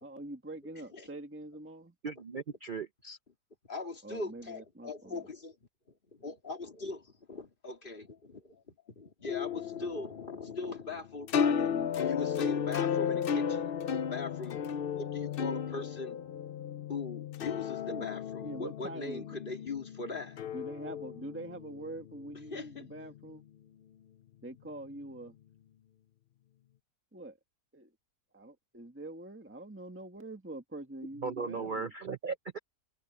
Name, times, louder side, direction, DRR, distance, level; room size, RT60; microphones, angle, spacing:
voice 1, 0.0-1.9 4.0-5.2 11.5-11.9 17.9-18.1 18.4-19.4 20.5-23.4 24.4-25.3 27.1-27.4 27.7-27.9 28.3-31.9, right 1 dB, 10° right, 1.6 m, -44 dB
voice 2, 2.0-3.2 31.2-32.6, right 4 dB, 70° right, 0.4 m, -37 dB
voice 3, 3.7-5.6 6.1-13.7 14.1-14.6 14.9-16.2 16.9-20.4 22.5-22.9, left 3 dB, 35° left, 2.4 m, -40 dB
sound 1, 9.3-23.3, left 7 dB, 60° left, 0.5 m, -34 dB
omnidirectional pair, 1.7 m